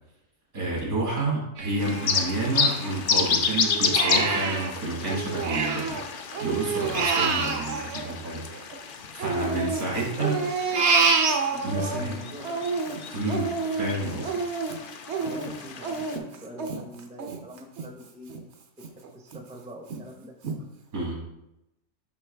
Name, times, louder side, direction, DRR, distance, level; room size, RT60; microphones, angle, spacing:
voice 1, 0.5-6.0 6.4-8.5 9.1-10.4 11.6-12.1 13.1-14.3 20.9-21.2, right 2 dB, 80° right, -3 dB, 2.5 m, -29 dB
Crying sobbing, 1.6-3.2 3.6-6.0 6.3-8.8 9.2-12.0 12.4-17.9 18.3-18.4 18.8-19.4 19.9-20.0 20.4-20.6, right 5 dB, 55° right, 0.9 m, -28 dB
sound 1, 1.8-16.2, left 6 dB, 60° left, 0.5 m, -31 dB
voice 2, 9.3-11.2 11.5-12.6 15.2-18.5 19.0-20.3, equal, 5° right, 2 dB, 0.5 m, -43 dB
5.9 x 5.4 x 3.3 m, 0.86 s
omnidirectional pair, 1.5 m